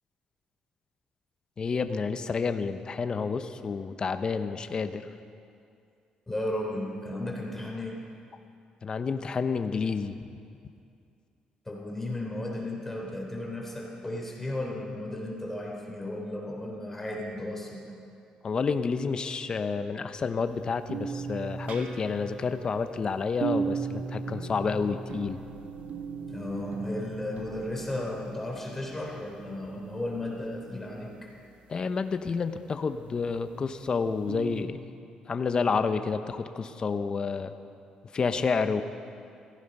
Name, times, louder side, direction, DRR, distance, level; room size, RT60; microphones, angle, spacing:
voice 1, 1.6-5.0 8.8-10.1 18.4-25.4 31.7-34.8 35.3-37.5 38.1-38.8, left 5 dB, 40° left, 9 dB, 0.8 m, -29 dB
voice 2, 6.3-8.0 11.7-17.8 26.3-31.3, left 1 dB, 15° left, -1 dB, 3.7 m, -34 dB
sound 1, 20.9-31.1 34.3-34.6, right 5 dB, 75° right, 1.6 m, -38 dB
17.5 x 15.0 x 5.5 m, 2.4 s
cardioid pair, 95°, 2 cm